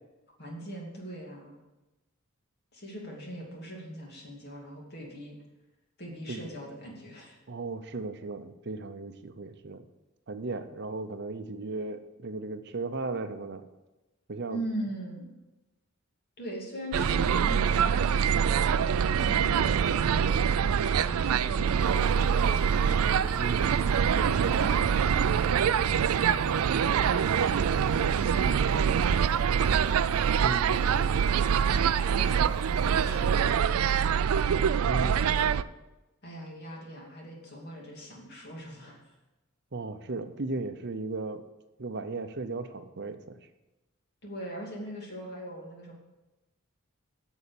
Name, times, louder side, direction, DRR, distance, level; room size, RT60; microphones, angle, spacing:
voice 1, 0.4-1.6 2.7-5.4 6.0-7.4 14.5-15.3 16.4-20.3 20.9-22.9 23.9-26.2 31.7-34.5 35.0-35.6 36.2-39.0 44.2-45.9, right 1 dB, 50° left, -1 dB, 2.6 m, -41 dB
voice 2, 7.5-9.8 10.3-13.6 14.3-14.6 23.4-23.8 30.4-31.1 34.9-35.2 39.7-41.4 41.8-43.4, right 3 dB, 50° right, 9 dB, 0.7 m, -36 dB
sound 1, 16.9-35.6, right 7 dB, 85° right, 0.4 m, -25 dB
sound 2, 21.7-33.4, right 1 dB, ahead, 1.6 m, -46 dB
sound 3, 22.5-25.9, right 1 dB, 25° right, 1.0 m, -46 dB
8.3 x 7.2 x 7.0 m, 1.0 s
head